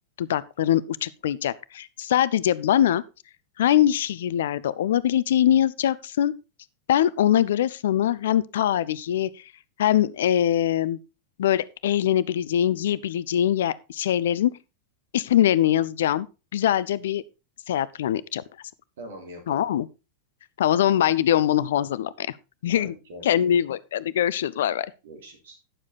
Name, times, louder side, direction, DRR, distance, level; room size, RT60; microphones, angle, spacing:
voice 1, 0.2-3.0 3.6-6.3 6.9-9.3 9.8-11.0 11.4-14.5 15.1-16.3 16.5-17.2 17.7-18.4 19.5-19.9 20.6-22.3 22.6-22.9 23.2-24.9, left 11 dB, 60° left, 0.4 m, -22 dB
voice 2, 19.0-19.7 22.7-23.5 25.0-25.6, right 1 dB, 60° right, 3.2 m, -42 dB
9.9 x 7.2 x 4.1 m
figure-of-eight pair, 90°, 0 cm